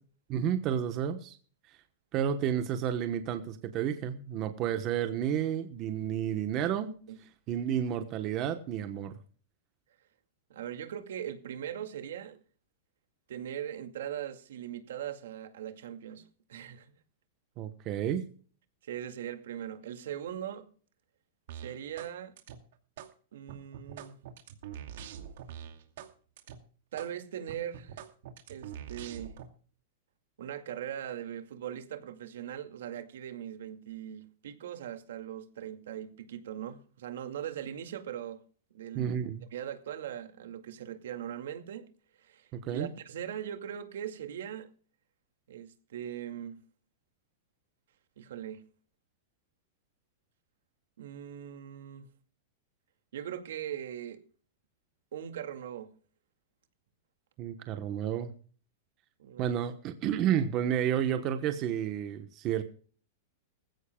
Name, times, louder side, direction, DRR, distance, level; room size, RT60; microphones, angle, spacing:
voice 1, 0.3-1.4 2.1-6.9 7.5-9.1 17.6-18.3 38.9-39.4 42.5-42.9 57.4-58.3 59.4-62.6, right 9 dB, 30° right, 1.1 m, -31 dB
voice 2, 10.5-12.4 13.3-16.9 18.8-20.7 21.5-22.3 23.3-24.2 26.9-28.0 28.5-29.4 30.4-38.4 38.7-39.1 39.5-41.8 42.2-44.7 45.5-46.6 48.2-48.6 51.0-52.1 53.1-54.2 55.1-55.9 59.2-59.5, right 10 dB, 75° right, 2.2 m, -40 dB
sound 1, 21.5-22.1 22.4-23.1 23.5-26.1 26.4-26.6 27.0-27.1 27.5-29.5, right 9 dB, 60° right, 2.4 m, -44 dB
20.0 x 15.5 x 2.3 m
supercardioid pair, 165°, 0 cm